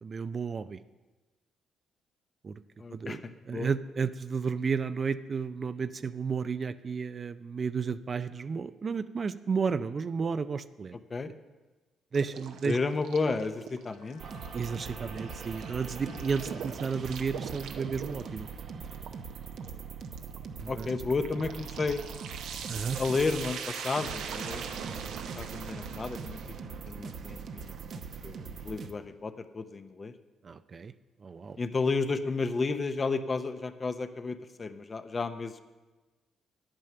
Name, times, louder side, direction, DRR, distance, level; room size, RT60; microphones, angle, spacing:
voice 1, 0.0-0.8 2.4-2.6 2.9-3.2 3.5-11.0 12.1-12.8 14.5-18.5 20.6-20.9 22.7-23.0 30.4-30.9 31.2-31.6, right 5 dB, 40° right, 12 dB, 0.4 m, -32 dB
voice 2, 2.8-3.7 11.1-11.3 12.6-14.4 20.7-22.0 23.0-24.7 25.0-30.1 31.6-35.6, left 4 dB, 35° left, 10 dB, 0.7 m, -32 dB
sound 1, 12.1-26.6, right 7 dB, 85° right, 0.9 m, -43 dB
Bowed string instrument, 13.8-17.4 17.8-18.2, left 4 dB, 85° left, 1.7 m, -55 dB
sound 2, 14.2-28.9, right 6 dB, 60° right, 0.8 m, -41 dB
9.1 x 8.9 x 6.7 m, 1.2 s
cardioid pair, 90°, 0 cm